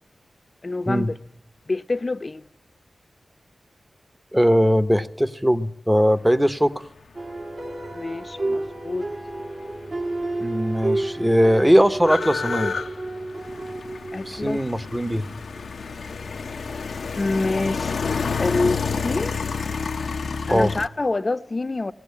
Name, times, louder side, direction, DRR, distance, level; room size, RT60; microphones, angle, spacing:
voice 1, 0.6-1.2 1.7-2.4 7.9-9.1 14.1-14.6 17.2-19.4 20.5-21.9, left 3 dB, 40° left, 0.7 m, -27 dB
voice 2, 4.3-6.9 10.4-12.8 14.3-15.4 20.5-20.7, equal, 10° right, 0.9 m, -20 dB
sound 1, 7.1-17.4, right 2 dB, 55° right, 2.4 m, -32 dB
sound 2, 10.2-10.3 10.5-20.9, left 5 dB, 80° left, 0.7 m, -29 dB
19.0 x 16.5 x 8.3 m
cardioid pair, 55°, 0 cm